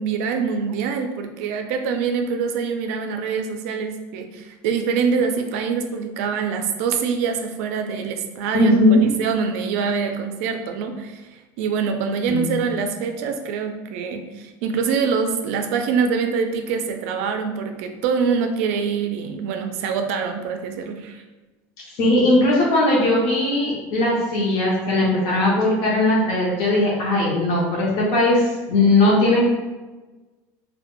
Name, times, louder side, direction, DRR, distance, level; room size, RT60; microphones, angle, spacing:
voice 1, 0.0-21.2, right 6 dB, 75° right, 6 dB, 0.3 m, -25 dB
voice 2, 8.5-9.1 12.3-12.6 22.0-29.4, left 1 dB, 55° left, -5 dB, 0.7 m, -18 dB
2.1 x 2.1 x 2.9 m, 1.2 s
cardioid pair, 145°, 7 cm